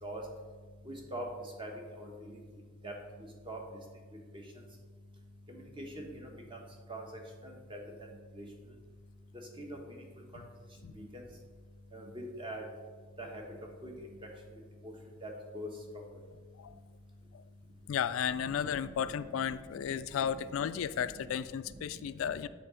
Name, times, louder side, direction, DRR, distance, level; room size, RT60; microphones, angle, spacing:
voice 1, 0.8-1.3 1.6-2.4 2.8-3.0 3.4-3.6 5.5-6.6 6.9-7.0 7.4-7.8 8.3-8.5 9.6-10.0 10.3-10.4 10.9-11.2 11.9-12.6 13.2-13.4 13.8-13.9 14.8-14.9 15.2-15.7 18.4-19.1 19.4-19.8 20.2-20.3 20.6-20.8 21.1-21.3 21.7-21.8 22.2-22.5, right 1 dB, 25° right, 1 dB, 1.2 m, -43 dB
voice 2, 17.9-22.5, left 8 dB, 80° left, 14 dB, 0.3 m, -34 dB
7.5 x 3.9 x 5.6 m, 1.5 s
head